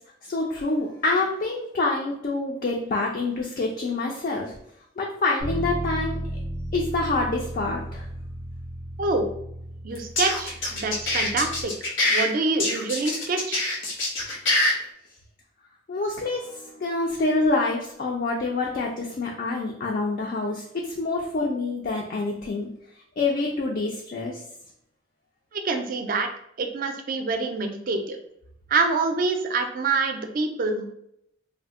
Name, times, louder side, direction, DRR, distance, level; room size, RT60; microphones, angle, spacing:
voice 1, 0.2-4.5 5.0-6.2 6.7-8.1 15.9-22.7 23.2-24.4, left 3 dB, 45° left, -1 dB, 0.4 m, -26 dB
Bass guitar, 5.4-11.6, right 1 dB, 90° left, 1.4 m, -34 dB
voice 2, 9.0-9.3 9.8-13.6 25.5-26.3 26.6-28.2 28.7-30.9, right 3 dB, 45° right, 6 dB, 0.4 m, -26 dB
sound 1, 9.9-12.2 12.6-14.7, left 2 dB, 75° left, 0.9 m, -24 dB
2.6 x 2.1 x 3.5 m, 0.74 s
head